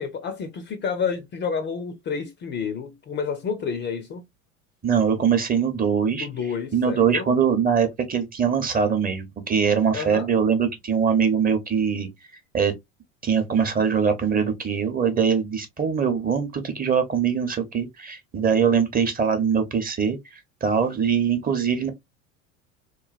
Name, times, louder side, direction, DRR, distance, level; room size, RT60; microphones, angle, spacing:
voice 1, 0.0-4.2 6.1-7.3 9.9-10.3, left 6 dB, 30° left, 0.5 m, -29 dB
voice 2, 4.8-6.3 6.7-12.1 12.5-12.7 13.2-20.2 20.6-21.9, right 7 dB, 20° right, 0.7 m, -22 dB
3.1 x 2.2 x 2.3 m
hypercardioid pair, 85°, 39 cm